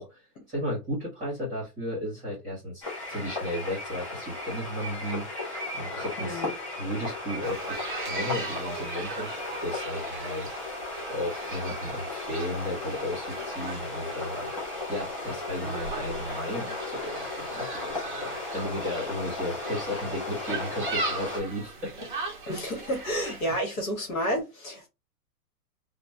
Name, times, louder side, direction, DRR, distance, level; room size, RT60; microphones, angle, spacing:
voice 1, 0.0-6.5 6.8-10.5 11.1-22.1 23.2-23.4, left 1 dB, 10° right, 0.9 m, -34 dB
sound 1, 2.8-21.4, left 2 dB, 20° left, 0.6 m, -35 dB
voice 2, 6.2-6.5 22.5-24.9, equal, 60° left, 1.3 m, -30 dB
sound 2, 7.4-23.6, right 3 dB, 35° right, 0.5 m, -39 dB
2.9 x 2.2 x 2.7 m
hypercardioid pair, 175°, 47 cm